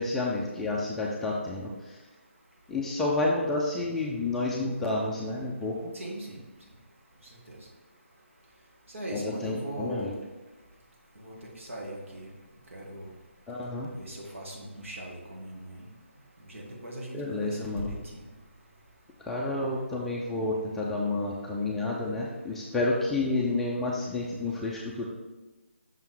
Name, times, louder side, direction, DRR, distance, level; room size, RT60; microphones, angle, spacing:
voice 1, 0.0-1.7 2.7-5.9 9.1-10.1 13.5-13.9 17.1-17.9 19.3-25.1, left 2 dB, 5° left, -4 dB, 0.4 m, -30 dB
voice 2, 5.9-6.4 7.5-7.6 8.9-10.1 11.2-12.3 12.7-13.1 14.0-15.8 16.5-18.2, right 1 dB, 70° right, -2 dB, 1.7 m, -39 dB
5.9 x 3.7 x 4.5 m, 1.2 s
figure-of-eight pair, 160°, 7 cm